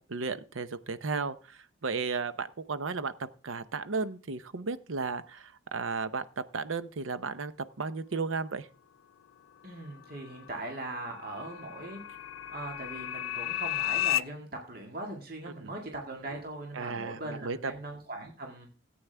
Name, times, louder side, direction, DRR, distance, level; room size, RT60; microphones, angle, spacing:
voice 1, 0.1-7.5 7.8-8.7 15.6-15.7 16.7-17.7, right 4 dB, 85° right, 13 dB, 0.8 m, -34 dB
voice 2, 9.6-12.0 12.5-18.7, right 2 dB, 50° right, 1 dB, 1.9 m, -40 dB
sound 1, 9.9-14.2, left 14 dB, 85° left, 0.4 m, -34 dB
14.5 x 8.7 x 3.4 m, 0.36 s
head